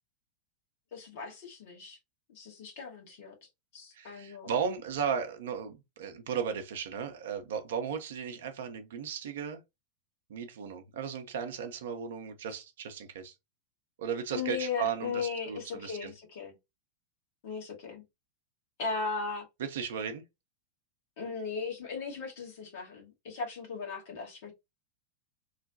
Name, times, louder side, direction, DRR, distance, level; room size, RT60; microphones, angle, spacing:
voice 1, 0.9-2.0 2.3-3.3 3.7-4.5 14.3-16.5 17.4-18.0 18.8-19.4 21.2-24.5, left 5 dB, 50° left, 1.4 m, -37 dB
voice 2, 3.9-9.6 10.3-13.3 14.0-16.1 19.6-20.2, right 7 dB, 60° right, 0.6 m, -35 dB
3.1 x 2.2 x 2.6 m
figure-of-eight pair, 90°, 0 cm